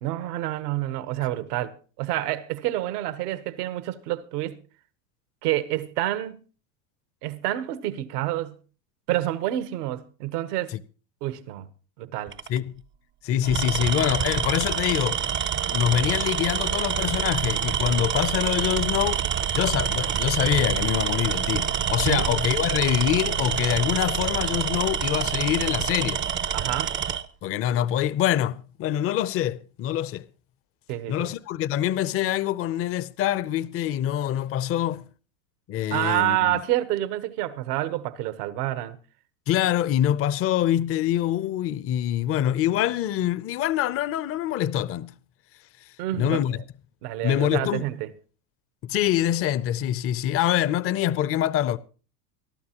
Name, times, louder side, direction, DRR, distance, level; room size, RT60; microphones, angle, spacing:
voice 1, 0.0-4.6 5.4-6.4 7.2-8.6 9.1-10.7 11.2-11.7 12.0-12.4 22.0-22.3 26.5-27.0 30.9-31.3 35.9-39.0 46.0-46.6 47.0-48.1, right 15 dB, 75° right, 1.2 m, -28 dB
Tools, 12.3-12.6 13.4-27.2, right 8 dB, 25° right, 0.6 m, -26 dB
voice 2, 13.2-15.2 15.7-19.2 19.5-26.2 27.4-30.3 31.1-35.0 35.7-36.6 39.5-45.1 46.2-46.6 47.2-47.8 48.8-51.8, left 11 dB, 30° left, 0.5 m, -25 dB
23.5 x 12.0 x 2.9 m
hypercardioid pair, 105°, 48 cm